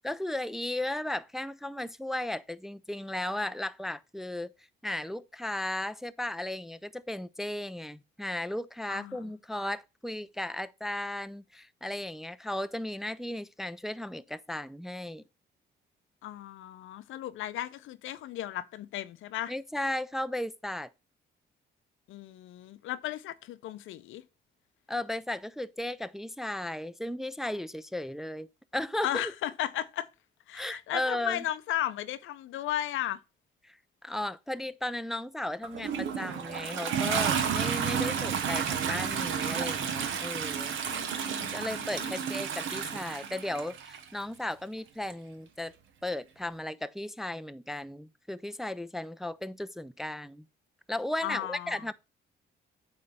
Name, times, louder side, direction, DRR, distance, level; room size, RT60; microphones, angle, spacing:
voice 1, 0.0-4.5 4.8-15.2 19.5-20.9 24.9-28.5 28.7-29.3 30.5-31.4 33.6-33.8 34.0-40.8 41.5-45.7 46.0-50.4 50.9-51.9, left 1 dB, ahead, 0.4 m, -35 dB
voice 2, 8.9-9.3 16.2-19.5 22.1-24.2 29.0-30.1 30.5-33.2 40.9-42.2 51.2-51.9, left 13 dB, 80° left, 0.6 m, -35 dB
Toilet flush, 35.6-44.0 45.1-45.2, right 7 dB, 80° right, 1.0 m, -31 dB
8.6 x 3.3 x 5.4 m
cardioid pair, 90°, 20 cm